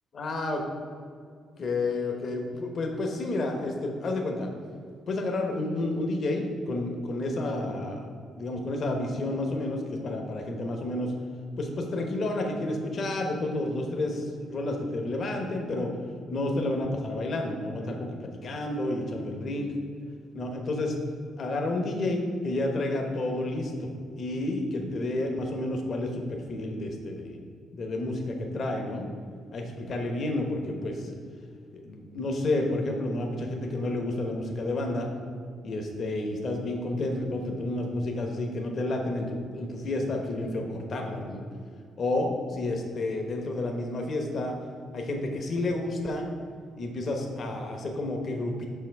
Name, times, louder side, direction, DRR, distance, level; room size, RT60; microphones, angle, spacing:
voice 1, 0.1-0.6 1.6-4.5 5.1-8.1 8.4-11.1 11.6-15.9 16.3-19.7 20.3-21.0 21.4-23.9 24.2-27.4 27.7-29.1 29.5-31.1 31.8-35.1 35.6-41.4 42.0-44.6 44.9-46.3 46.8-48.7, left 2 dB, 50° left, 2 dB, 0.9 m, -30 dB
5.7 x 5.6 x 4.6 m, 2.2 s
cardioid pair, 90°, 0 cm